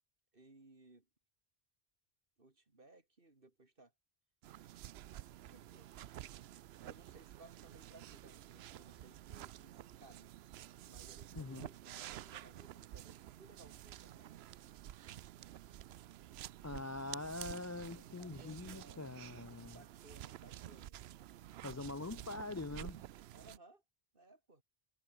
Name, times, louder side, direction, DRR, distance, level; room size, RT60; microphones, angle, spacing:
voice 1, 0.3-1.1 2.4-3.9 5.4-5.9 6.8-10.3 10.8-14.4 18.2-19.2 19.7-21.0 23.3-23.8 24.1-24.6, right 2 dB, 60° right, 3.4 m, -62 dB
sound 1, 4.4-23.6, right 12 dB, 80° right, 0.8 m, -51 dB
voice 2, 11.3-11.7 16.6-19.8 21.6-23.0, left 2 dB, 25° left, 0.3 m, -44 dB
omnidirectional pair, 1.0 m